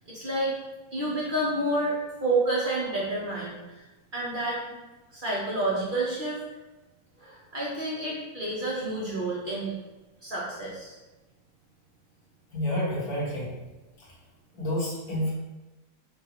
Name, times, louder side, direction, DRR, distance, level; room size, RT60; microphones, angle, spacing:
voice 1, 0.1-0.5 0.9-3.8 4.1-4.6 5.1-6.4 7.2-9.7 10.2-11.0, right 2 dB, 55° right, -6 dB, 0.5 m, -29 dB
voice 2, 12.5-13.5 14.5-15.3, left 1 dB, 60° left, -7 dB, 1.8 m, -29 dB
5.3 x 2.4 x 2.9 m, 1.1 s
omnidirectional pair, 1.9 m